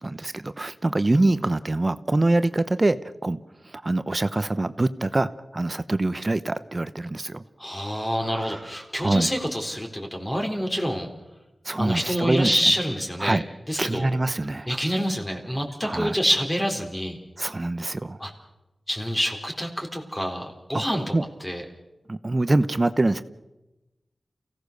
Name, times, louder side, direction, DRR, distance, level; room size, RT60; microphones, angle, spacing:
voice 1, 0.0-7.4 8.3-8.6 9.0-9.3 11.6-12.5 13.2-13.4 13.8-14.7 15.8-16.2 17.4-18.2 20.7-20.8 21.1-21.3 22.1-23.2, right 2 dB, 30° right, 13 dB, 0.9 m, -24 dB
voice 2, 7.6-11.1 11.8-14.1 14.7-17.2 18.2-18.3 18.9-21.1 21.4-21.6, equal, 15° left, 3 dB, 3.9 m, -27 dB
29.0 x 17.0 x 6.7 m, 1.0 s
wide cardioid pair, 90°, 0 cm